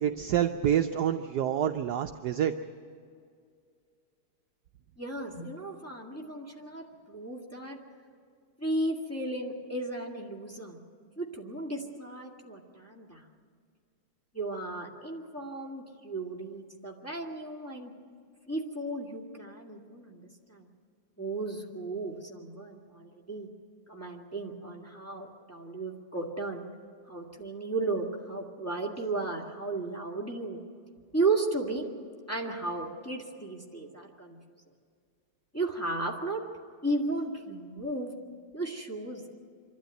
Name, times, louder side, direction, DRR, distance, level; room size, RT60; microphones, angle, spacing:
voice 1, 0.0-2.5, right 10 dB, 70° right, 7 dB, 1.0 m, -27 dB
voice 2, 5.0-7.8 8.6-10.8 11.2-13.3 14.3-17.9 18.5-20.2 20.5-20.7 21.2-23.5 23.9-26.7 27.1-30.6 31.1-31.9 32.3-34.4 35.5-36.4 36.8-38.1 38.5-39.3, right 2 dB, 5° left, -1 dB, 1.8 m, -34 dB
26.0 x 12.5 x 9.1 m, 2.2 s
omnidirectional pair, 2.3 m